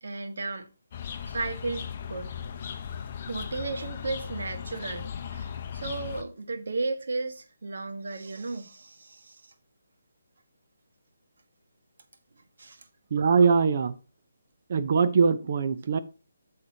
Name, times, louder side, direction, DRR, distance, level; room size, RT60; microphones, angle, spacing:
voice 1, 0.0-0.7 1.2-2.3 3.2-9.5 12.6-12.9, right 3 dB, 70° right, 1.3 m, -34 dB
sound 1, 0.9-6.2, left 7 dB, 35° left, 0.8 m, -37 dB
voice 2, 13.1-14.0 14.7-16.0, right 5 dB, 45° right, 0.7 m, -22 dB
8.6 x 6.7 x 2.8 m
hypercardioid pair, 165°, 0 cm